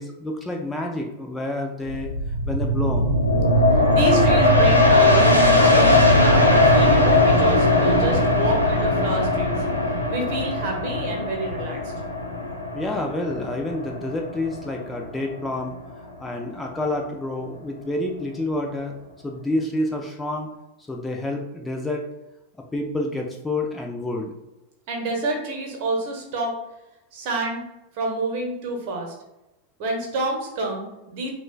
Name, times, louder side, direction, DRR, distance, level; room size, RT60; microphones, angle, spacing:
voice 1, 0.0-2.1 2.5-3.1 12.7-18.9 19.2-20.5 20.9-22.0 22.7-24.3, left 1 dB, 10° left, 1 dB, 0.5 m, -28 dB
sound 1, 1.9-15.2 15.6-15.7, left 1 dB, 90° right, 0.7 m, -19 dB
voice 2, 3.7-9.6 10.1-11.9 24.9-26.5 27.1-27.6 27.9-29.1 29.8-31.3, right 2 dB, 45° right, 1 dB, 1.0 m, -28 dB
6.0 x 2.3 x 2.2 m, 0.96 s
figure-of-eight pair, 90°, 0 cm